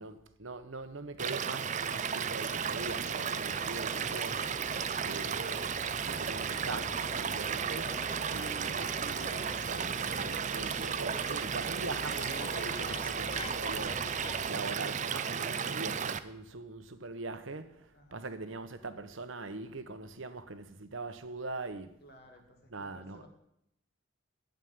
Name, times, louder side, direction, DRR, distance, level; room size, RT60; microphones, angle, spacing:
voice 1, 0.0-4.4 5.0-5.8 6.1-8.0 8.3-14.1 14.5-22.0 22.7-23.3, right 3 dB, 70° right, 1.0 m, -42 dB
Stream / Liquid, 1.2-16.2, right 7 dB, 35° right, 0.5 m, -34 dB
sound 1, 2.4-14.5, left 3 dB, 25° left, 0.4 m, -47 dB
voice 2, 8.0-8.4 17.8-18.3 22.0-23.3, left 1 dB, 50° left, 2.2 m, -57 dB
9.1 x 8.2 x 9.5 m
head